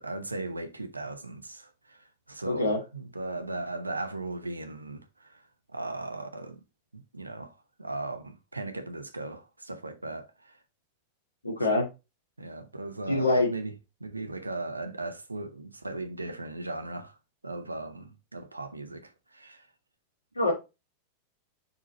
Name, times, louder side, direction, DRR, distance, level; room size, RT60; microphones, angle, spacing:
voice 1, 0.0-5.4 5.7-6.6 6.9-7.5 7.8-10.6 11.7-11.8 12.4-13.7 14.0-17.2 17.4-19.7, right 2 dB, 80° right, 0.9 m, -38 dB
voice 2, 2.5-2.8 11.4-11.9 13.1-13.5 20.4-20.5, left 2 dB, 80° left, 2.5 m, -24 dB
5.5 x 4.9 x 4.1 m
figure-of-eight pair, 90°, 0 cm